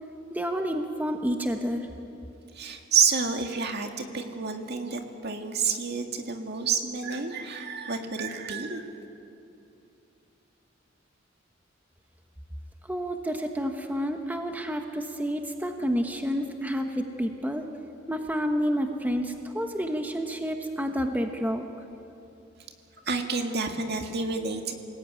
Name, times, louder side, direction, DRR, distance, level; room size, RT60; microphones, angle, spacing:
voice 1, 0.3-1.9 12.8-17.7 18.1-21.6, equal, 10° right, 4 dB, 1.2 m, -29 dB
voice 2, 2.5-8.8 23.1-24.7, right 5 dB, 55° right, 4 dB, 2.2 m, -29 dB
27.5 x 19.0 x 9.3 m, 2.8 s
head